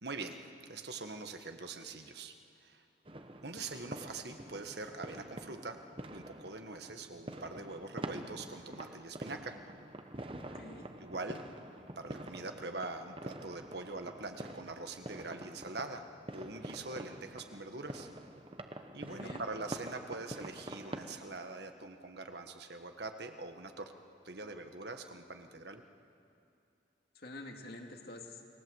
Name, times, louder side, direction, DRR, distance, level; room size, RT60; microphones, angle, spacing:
voice 1, 0.0-2.3 2.6-2.8 3.4-5.8 6.1-9.6 11.0-11.4 12.0-16.0 16.3-18.1 18.9-23.9 24.2-25.8, right 3 dB, 65° right, 6 dB, 1.6 m, -43 dB
sound 1, 3.0-21.2, right 1 dB, 30° right, 1.1 m, -46 dB
voice 2, 10.4-10.9 19.0-19.4 27.1-28.4, left 2 dB, 55° left, 2 dB, 2.5 m, -48 dB
29.5 x 20.5 x 8.1 m, 2.6 s
head